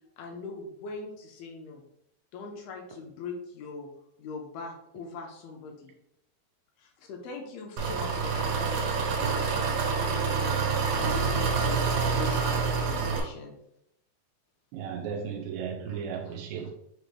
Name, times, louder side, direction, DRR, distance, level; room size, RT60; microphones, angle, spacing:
voice 1, 0.2-1.8 2.3-3.9 4.2-5.9 6.8-11.9 12.1-13.6 15.9-16.3 16.6-16.7, left 3 dB, 80° left, 1 dB, 2.4 m, -41 dB
Engine, 7.8-13.2, right 5 dB, 70° right, 2.3 m, -27 dB
voice 2, 14.7-16.7, right 7 dB, 90° right, 1 dB, 2.1 m, -35 dB
6.5 x 2.5 x 3.2 m, 0.75 s
omnidirectional pair, 4.8 m